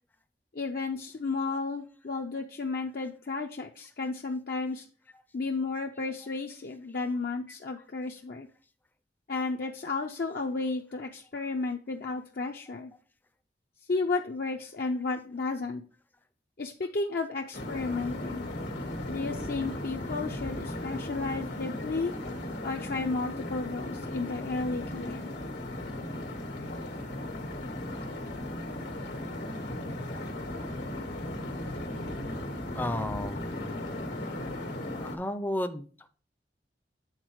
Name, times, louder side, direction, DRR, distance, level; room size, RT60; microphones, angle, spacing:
voice 1, 0.5-4.8 5.3-8.5 9.3-12.9 13.9-15.8 16.6-18.5 19.1-22.1 22.6-25.3, left 3 dB, 55° left, 1 dB, 0.6 m, -33 dB
sound 1, 17.5-35.2, left 1 dB, 85° left, 1.6 m, -36 dB
voice 2, 32.7-33.8 35.0-35.9, left 1 dB, 10° left, 8 dB, 0.5 m, -33 dB
8.1 x 4.1 x 4.6 m, 0.40 s
head